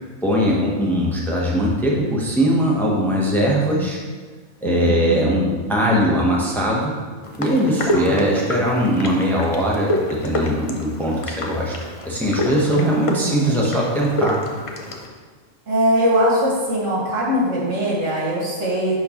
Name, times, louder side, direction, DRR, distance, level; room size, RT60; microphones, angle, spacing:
voice 1, 0.0-4.0 4.6-7.0 7.4-11.7 12.0-14.4, equal, ahead, -3 dB, 0.8 m, -20 dB
voice 2, 4.6-5.5 7.9-8.4 12.7-13.7 15.7-18.9, right 1 dB, 85° right, -6 dB, 2.2 m, -22 dB
sound 1, 7.2-15.1, left 1 dB, 35° left, 0.6 m, -28 dB
11.0 x 4.4 x 3.0 m, 1.5 s
omnidirectional pair, 1.3 m